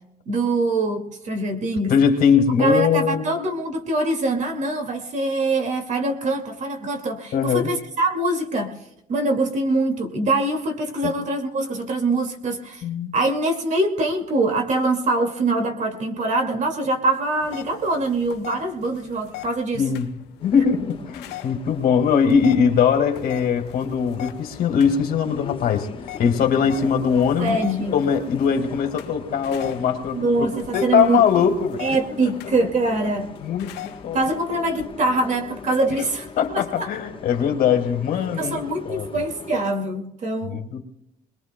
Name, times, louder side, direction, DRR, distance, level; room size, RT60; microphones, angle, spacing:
voice 1, 0.3-1.9 2.6-8.7 9.1-12.8 13.1-19.8 27.4-27.9 30.1-31.2 31.8-33.3 34.1-36.9 38.4-40.6, right 2 dB, 45° right, 5 dB, 2.1 m, -23 dB
voice 2, 1.9-3.2 7.3-7.7 11.0-11.1 12.8-13.1 19.7-20.1 20.4-25.9 26.2-27.6 27.9-30.5 30.7-31.8 32.2-32.3 33.4-34.2 36.4-38.6 38.9-39.1 40.4-40.8, left 7 dB, 65° left, 5 dB, 1.9 m, -21 dB
sound 1, 17.4-34.9, left 12 dB, 85° left, 0.9 m, -42 dB
Bus, 20.4-39.7, left 5 dB, 30° left, 1.1 m, -40 dB
23.5 x 21.0 x 2.2 m, 0.82 s
cardioid pair, 110°, 17 cm